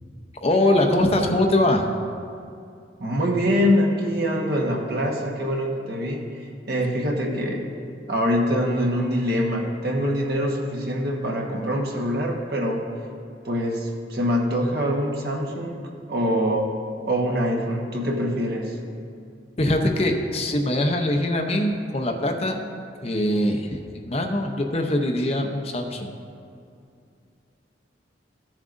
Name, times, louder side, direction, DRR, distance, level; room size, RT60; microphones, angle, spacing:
voice 1, 0.4-1.9 19.6-22.6 23.0-23.8 24.0-26.1, left 1 dB, 35° left, 3 dB, 0.7 m, -22 dB
voice 2, 3.0-7.7 8.1-12.8 13.4-15.8 16.1-16.6 17.0-18.8, equal, 60° right, 0 dB, 1.2 m, -24 dB
14.5 x 7.3 x 2.6 m, 2.5 s
head